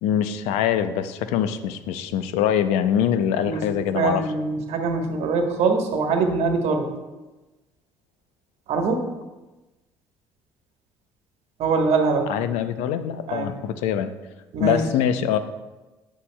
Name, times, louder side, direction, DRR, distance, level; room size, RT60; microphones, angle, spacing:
voice 1, 0.0-4.3 12.3-14.1 14.6-15.4, left 9 dB, 75° left, 11 dB, 0.5 m, -23 dB
voice 2, 3.9-6.9 8.7-9.0 11.6-12.3 13.3-13.5 14.5-14.8, right 4 dB, 65° right, 4 dB, 1.2 m, -23 dB
9.8 x 8.3 x 2.2 m, 1.1 s
hypercardioid pair, 55°, 12 cm